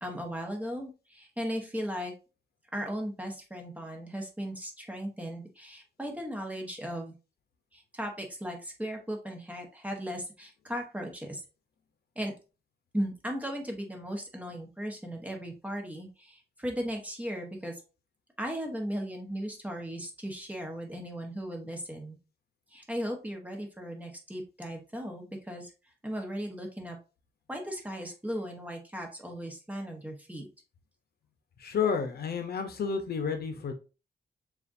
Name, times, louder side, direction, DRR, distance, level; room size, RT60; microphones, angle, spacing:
voice 1, 0.0-2.1 2.7-7.1 7.7-11.4 12.2-12.3 12.9-17.8 18.4-22.2 22.7-25.7 26.0-27.0 27.5-30.4, equal, 10° right, 2 dB, 1.1 m, -37 dB
voice 2, 31.6-33.7, left 6 dB, 65° left, 7 dB, 0.7 m, -30 dB
6.7 x 2.5 x 2.6 m, 0.32 s
wide cardioid pair, 120°, 17 cm